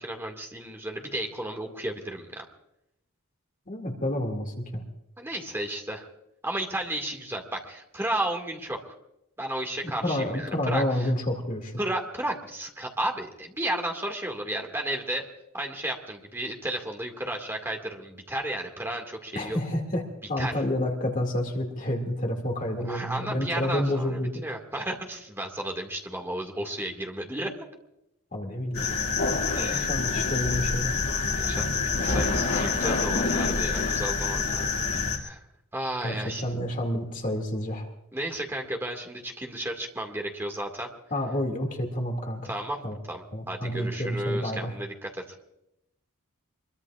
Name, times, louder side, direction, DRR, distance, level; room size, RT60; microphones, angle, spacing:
voice 1, 0.0-2.4 5.2-6.1 6.4-8.9 9.4-11.1 11.8-19.6 20.4-20.5 22.9-27.5 28.8-28.9 29.5-29.9 31.4-35.4 35.7-36.4 38.1-40.9 42.4-42.8 43.1-45.4, right 1 dB, 10° right, 1 dB, 2.0 m, -33 dB
voice 2, 3.7-4.8 10.0-11.8 19.3-20.0 20.3-24.3 28.3-31.0 36.0-37.9 41.1-42.5 42.8-43.0 43.3-44.7, left 1 dB, 35° left, 2 dB, 2.3 m, -29 dB
sound 1, 28.7-35.2, left 4 dB, 75° left, 2.6 m, -26 dB
24.0 x 22.5 x 2.5 m, 0.86 s
head